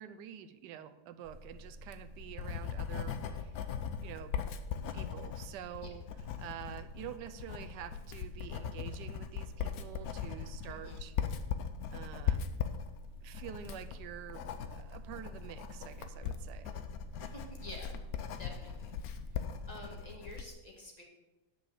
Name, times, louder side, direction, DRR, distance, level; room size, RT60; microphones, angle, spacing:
voice 1, 0.0-3.5 4.0-4.3 4.9-6.0 6.4-11.1 11.9-12.5 13.2-14.4 14.7-16.8, right 10 dB, 85° right, 9 dB, 1.2 m, -47 dB
sound 1, 1.2-20.2, equal, 45° right, 1.3 m, -51 dB
Writing, 1.8-20.5, left 8 dB, 65° left, 1.1 m, -39 dB
voice 2, 10.7-11.0 17.2-17.9 18.4-18.9 19.7-21.0, left 1 dB, 25° left, -1 dB, 1.9 m, -49 dB
9.7 x 5.3 x 6.8 m, 1.1 s
omnidirectional pair, 1.8 m